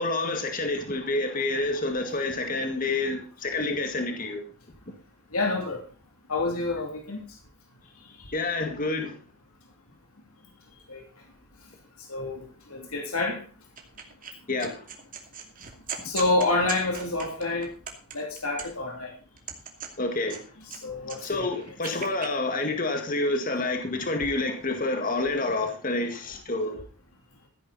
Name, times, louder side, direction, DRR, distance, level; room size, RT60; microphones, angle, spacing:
voice 1, 0.0-4.4 8.3-9.1 14.5-14.8 20.0-20.4 21.2-26.8, left 2 dB, 40° left, 1.9 m, -28 dB
voice 2, 5.3-5.8 6.3-7.2 8.2-8.3 10.9-11.0 12.1-13.4 16.0-17.7 18.1-19.1 20.6-21.8, left 2 dB, 80° left, 2.8 m, -28 dB
sound 1, 13.8-14.3 14.6-18.9 19.3-20.8 21.0-22.3, right 7 dB, 40° right, 2.6 m, -39 dB
14.5 x 10.0 x 4.1 m
head